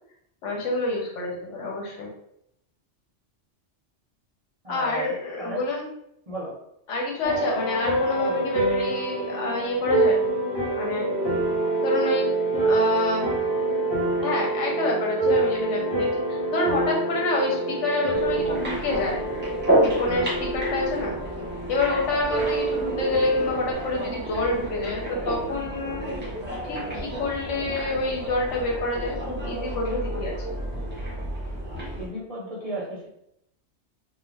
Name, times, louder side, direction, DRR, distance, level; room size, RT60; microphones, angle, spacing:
voice 1, 0.4-2.1 4.7-5.9 6.9-10.2 10.8-11.3 11.8-12.3 12.6-13.3 14.2-19.2 19.8-21.2 21.7-26.1 26.6-30.3, left 2 dB, 90° left, -1 dB, 1.1 m, -28 dB
voice 2, 4.6-5.6 6.3-6.5 8.1-8.4 31.9-33.1, right 1 dB, 40° right, -5 dB, 0.6 m, -34 dB
sound 1, 7.2-23.7, right 2 dB, 25° left, 1.0 m, -26 dB
sound 2, 18.1-32.1, right 1 dB, 10° right, 0.9 m, -30 dB
2.4 x 2.2 x 3.2 m, 0.77 s
omnidirectional pair, 1.2 m